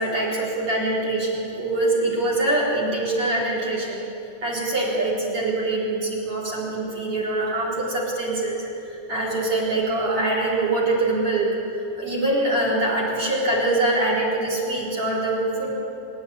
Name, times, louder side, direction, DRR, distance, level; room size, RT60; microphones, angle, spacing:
voice 1, 0.0-4.0 4.4-8.7 9.1-11.6 12.0-15.7, right 2 dB, 30° right, -3 dB, 4.2 m, -24 dB
25.5 x 11.0 x 9.5 m, 2.6 s
omnidirectional pair, 5.4 m